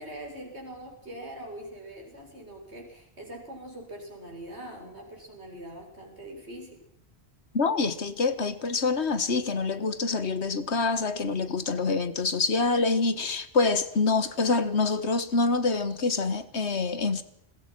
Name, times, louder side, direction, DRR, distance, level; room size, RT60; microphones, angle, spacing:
voice 1, 0.0-6.8, right 1 dB, 80° right, 7.8 m, -42 dB
voice 2, 7.5-17.2, left 3 dB, 85° left, 1.8 m, -26 dB
29.5 x 21.5 x 6.1 m
omnidirectional pair, 1.1 m